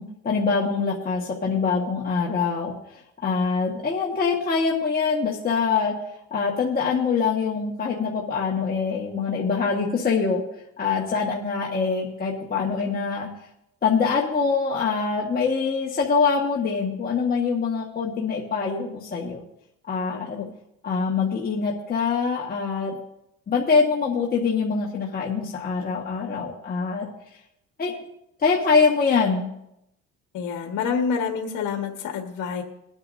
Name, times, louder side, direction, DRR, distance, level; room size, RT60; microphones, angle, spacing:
voice 1, 0.0-5.9 6.3-10.4 10.8-13.3 13.8-19.4 19.9-20.4 20.8-23.0 23.5-27.1 27.8-28.0 28.4-29.4, left 5 dB, 30° left, -3 dB, 1.6 m, -24 dB
voice 2, 30.3-32.6, left 6 dB, 70° left, 2 dB, 1.6 m, -27 dB
22.0 x 9.8 x 2.7 m, 0.81 s
cardioid pair, 140°, 31 cm